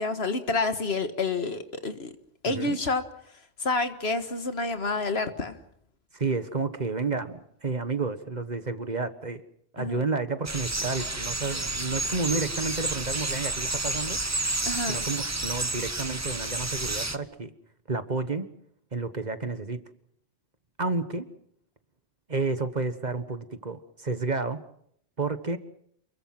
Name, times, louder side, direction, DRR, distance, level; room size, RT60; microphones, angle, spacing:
voice 1, 0.0-2.1 2.4-3.0 3.6-5.6 9.8-10.0 14.7-15.0, left 3 dB, 65° left, 9 dB, 1.9 m, -28 dB
voice 2, 2.5-2.8 6.1-9.4 9.7-14.2 14.9-17.5 17.9-18.5 18.9-19.8 20.8-21.3 22.3-24.6 25.2-25.6, right 3 dB, 40° right, 10 dB, 1.5 m, -30 dB
sound 1, 10.4-17.2, right 2 dB, 15° right, 0.8 m, -30 dB
28.5 x 22.0 x 6.1 m, 0.69 s
omnidirectional pair, 1.1 m